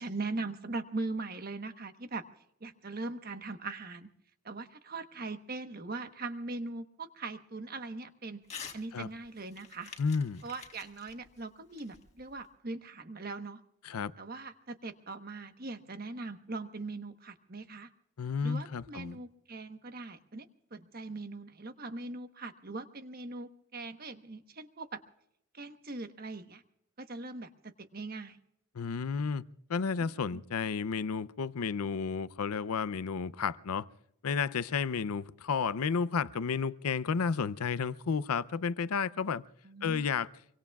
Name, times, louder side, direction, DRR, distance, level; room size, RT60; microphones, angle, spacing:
voice 1, 0.0-2.2 2.6-4.1 4.4-8.4 8.7-9.9 10.4-13.6 14.2-17.9 18.4-25.0 25.5-26.6 27.0-28.4 30.0-30.4 39.6-40.0, right 3 dB, 45° right, 1.1 m, -40 dB
Crumpling crinkling / Tearing, 8.4-8.8 9.2-12.5, left 6 dB, 30° left, 1.7 m, -48 dB
voice 2, 10.0-10.4 13.8-14.1 18.2-19.2 28.7-29.4 29.7-33.9 34.2-39.4 39.8-40.3, left 5 dB, 90° left, 0.5 m, -32 dB
25.5 x 24.0 x 2.3 m
head